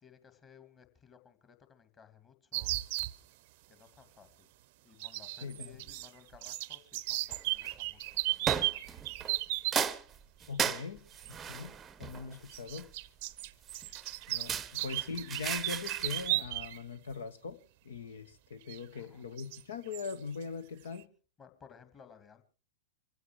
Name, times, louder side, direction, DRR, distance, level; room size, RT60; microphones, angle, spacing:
voice 1, 0.0-2.8 3.7-4.5 4.8-9.0 10.5-10.8 14.6-14.7 18.9-19.2 21.4-22.4, left 7 dB, 20° left, 2.3 m, -59 dB
sound 1, 2.5-3.1 5.0-6.1 6.3-9.8 11.2-11.3 12.5-16.8 17.1-17.2 18.7-18.8 19.4-19.6 19.9-20.1, right 19 dB, 45° right, 0.7 m, -35 dB
voice 2, 5.4-5.8 10.5-11.0 11.3-12.9 14.3-21.1, left 5 dB, 65° left, 1.4 m, -41 dB
sound 2, 7.3-7.8 8.5-9.4 9.7-13.0 13.7-16.3, right 7 dB, 20° right, 0.8 m, -36 dB
25.0 x 16.0 x 3.1 m
figure-of-eight pair, 100°, 0 cm